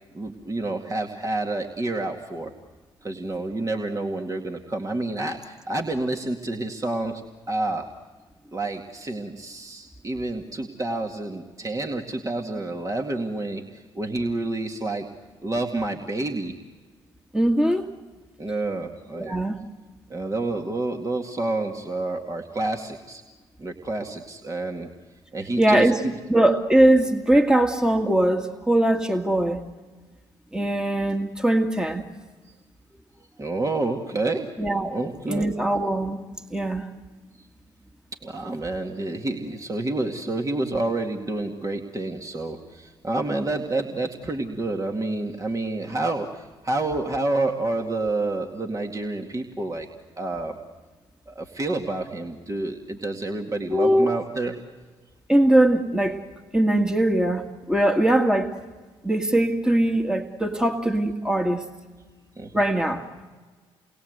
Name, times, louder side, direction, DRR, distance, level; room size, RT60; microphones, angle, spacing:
voice 1, 0.1-2.5 3.0-7.2 7.5-7.8 8.5-15.1 15.4-16.5 18.4-19.4 20.1-23.2 23.6-24.9 25.3-25.9 33.4-34.5 34.9-35.5 38.2-49.9 50.2-50.6 51.3-54.6 62.4-62.5, right 2 dB, 25° right, 2 dB, 2.2 m, -29 dB
voice 2, 17.3-17.8 19.1-19.6 25.6-26.0 26.3-29.6 30.5-32.0 34.6-35.0 35.3-36.2 36.5-36.9 53.7-54.1 55.3-56.2 56.5-58.5 59.0-61.6 62.5-63.3, right 1 dB, 5° right, 4 dB, 2.1 m, -21 dB
29.0 x 21.5 x 8.1 m, 1.4 s
hypercardioid pair, 50°, 13 cm